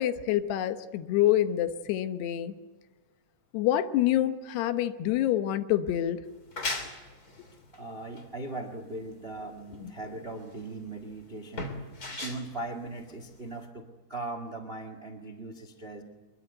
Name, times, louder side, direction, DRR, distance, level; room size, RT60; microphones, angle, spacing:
voice 1, 0.0-2.5 3.5-6.2 9.8-9.9, left 12 dB, 80° left, 10 dB, 3.2 m, -27 dB
sound 1, 6.2-13.7, left 2 dB, 25° left, 2.8 m, -39 dB
voice 2, 7.7-11.8 12.2-16.0, right 2 dB, 75° right, 9 dB, 0.5 m, -39 dB
24.0 x 22.0 x 8.1 m, 1.3 s
omnidirectional pair, 4.7 m